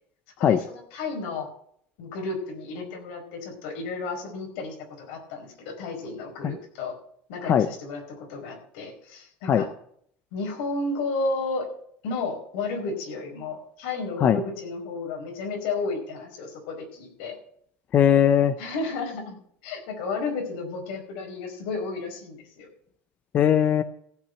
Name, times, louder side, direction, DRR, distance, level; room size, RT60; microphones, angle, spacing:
voice 1, 0.4-1.5 2.0-6.9 7.3-9.7 10.3-11.7 12.0-17.4 18.6-22.7, left 3 dB, 80° left, 2 dB, 4.8 m, -32 dB
voice 2, 17.9-18.5 23.3-23.8, left 9 dB, 30° left, 12 dB, 0.6 m, -19 dB
15.0 x 5.9 x 7.7 m, 0.66 s
cardioid pair, 165°, 5 cm